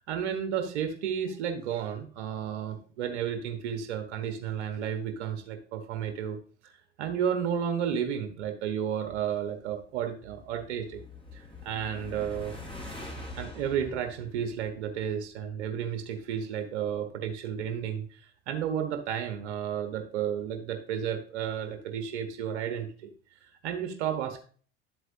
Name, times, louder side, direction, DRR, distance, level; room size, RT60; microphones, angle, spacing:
voice 1, 0.0-6.4 6.6-6.7 7.0-11.0 11.3-12.5 13.3-23.1 23.4-24.4, right 8 dB, 70° right, 6 dB, 1.3 m, -32 dB
sound 1, 9.8-15.2, left 2 dB, 15° left, 4.8 m, -44 dB
11.5 x 7.9 x 2.7 m, 0.42 s
figure-of-eight pair, 65°, 34 cm